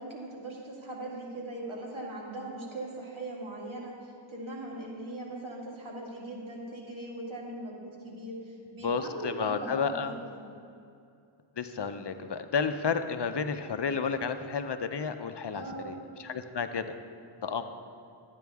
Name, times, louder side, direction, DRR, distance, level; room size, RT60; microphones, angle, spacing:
voice 1, 0.0-10.4 15.5-16.0, right 1 dB, 75° right, -3 dB, 2.1 m, -40 dB
voice 2, 8.8-10.1 11.6-16.9 17.4-17.7, left 5 dB, 60° left, 9 dB, 0.6 m, -31 dB
12.5 x 9.2 x 3.5 m, 2.5 s
wide cardioid pair, 45°, 48 cm